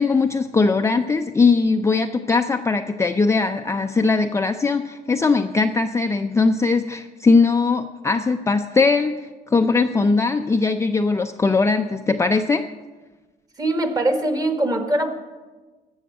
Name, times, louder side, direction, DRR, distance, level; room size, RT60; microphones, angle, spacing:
voice 1, 0.0-12.6, left 4 dB, 15° left, 5 dB, 0.5 m, -20 dB
voice 2, 13.6-15.2, right 1 dB, 20° right, 6 dB, 1.5 m, -22 dB
14.5 x 6.3 x 7.8 m, 1.3 s
cardioid pair, 110°, 17 cm